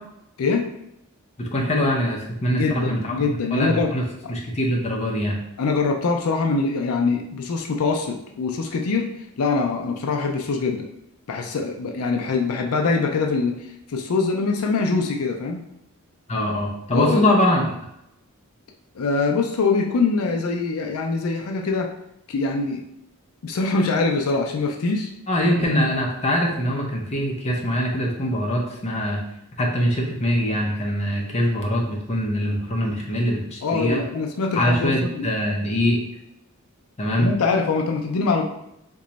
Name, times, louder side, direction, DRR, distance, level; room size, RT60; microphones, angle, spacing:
voice 1, 1.4-4.0 4.3-5.4 16.3-17.7 25.3-29.2 29.6-34.0 34.5-36.0 37.0-37.3, equal, 30° left, -1 dB, 0.6 m, -23 dB
voice 2, 2.5-3.9 5.6-9.1 9.4-10.9 11.3-13.6 13.9-15.7 16.9-17.3 19.0-21.9 22.3-22.8 23.4-25.1 33.6-35.3 37.2-38.4, left 4 dB, 80° left, 3 dB, 0.4 m, -23 dB
2.9 x 2.3 x 3.9 m, 0.80 s
head